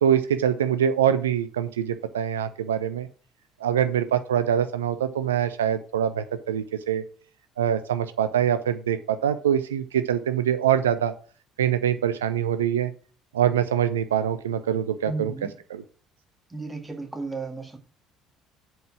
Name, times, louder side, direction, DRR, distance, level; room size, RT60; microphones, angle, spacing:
voice 1, 0.0-3.1 3.6-7.0 7.6-11.1 11.6-12.9 13.3-15.3 15.7-15.8, right 9 dB, 75° right, 11 dB, 0.4 m, -24 dB
voice 2, 15.1-15.5 16.5-17.8, right 3 dB, 15° right, 4 dB, 2.0 m, -34 dB
7.8 x 4.7 x 6.1 m, 0.40 s
figure-of-eight pair, 55°, 0 cm